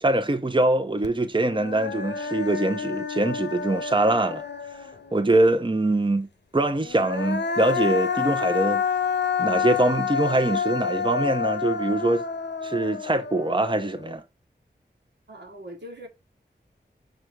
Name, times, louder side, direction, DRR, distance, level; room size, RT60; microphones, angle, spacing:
voice 1, 0.0-4.4 5.1-6.3 6.5-8.8 9.4-12.2 12.6-14.2, right 2 dB, 25° right, 0.8 m, -23 dB
Human voice, 1.0-1.1 1.5-5.2 6.8-14.1, left 6 dB, 75° left, 0.8 m, -28 dB
voice 2, 15.3-16.1, equal, 80° right, 1.8 m, -41 dB
6.5 x 3.8 x 4.7 m
cardioid pair, 40°, 18 cm